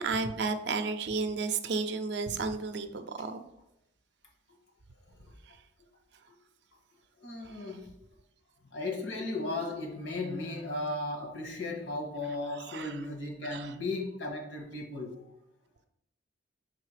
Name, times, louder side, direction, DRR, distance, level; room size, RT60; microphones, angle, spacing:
voice 1, 0.0-3.4 12.7-12.9 13.5-13.7, right 4 dB, 65° right, 9 dB, 0.5 m, -32 dB
voice 2, 7.2-7.8 8.7-15.2, left 2 dB, 80° left, 1 dB, 1.5 m, -35 dB
5.6 x 3.7 x 4.8 m, 0.82 s
head